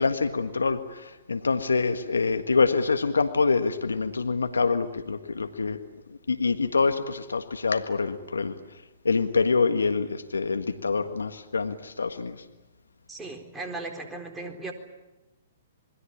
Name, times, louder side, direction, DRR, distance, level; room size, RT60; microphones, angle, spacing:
voice 1, 0.0-5.8 6.1-8.5 9.0-12.3, left 4 dB, 90° left, 8 dB, 1.7 m, -25 dB
voice 2, 13.1-14.7, right 2 dB, 10° right, 2 dB, 4.2 m, -37 dB
27.5 x 21.5 x 8.7 m, 1.1 s
hypercardioid pair, 125°, 0 cm